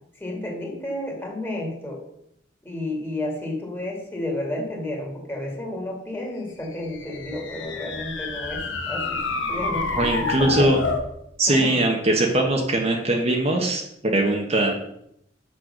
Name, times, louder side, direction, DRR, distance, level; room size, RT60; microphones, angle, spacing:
voice 1, 0.2-2.0 2.6-9.2 9.5-10.8 11.5-11.8, left 1 dB, 15° left, 0 dB, 2.2 m, -31 dB
sound 1, 6.7-11.1, left 3 dB, 80° left, 1.3 m, -29 dB
voice 2, 9.9-10.8 11.4-14.7, right 1 dB, 35° right, 1 dB, 1.1 m, -21 dB
6.7 x 6.3 x 6.5 m, 0.76 s
head